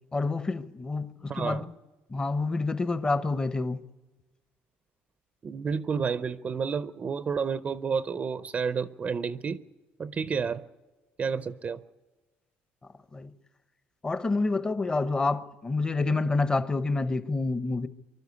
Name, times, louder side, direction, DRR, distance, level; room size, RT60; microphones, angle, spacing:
voice 1, 0.1-1.6 2.1-3.8 13.1-13.3 14.0-17.9, left 3 dB, 20° left, 0.8 m, -28 dB
voice 2, 1.3-1.7 5.4-9.6 10.0-10.6 11.2-11.8, right 6 dB, 30° right, 0.6 m, -30 dB
24.5 x 12.5 x 9.7 m
cardioid pair, 120°, 5 cm